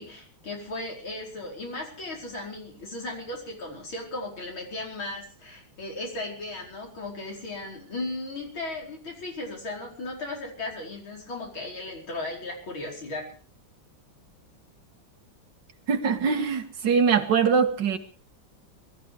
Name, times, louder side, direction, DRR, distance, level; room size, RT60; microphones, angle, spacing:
voice 1, 0.0-13.3, left 2 dB, 85° left, 0 dB, 5.7 m, -36 dB
voice 2, 15.9-18.0, right 6 dB, 65° right, 5 dB, 2.3 m, -22 dB
21.5 x 13.5 x 4.8 m, 0.41 s
omnidirectional pair, 2.2 m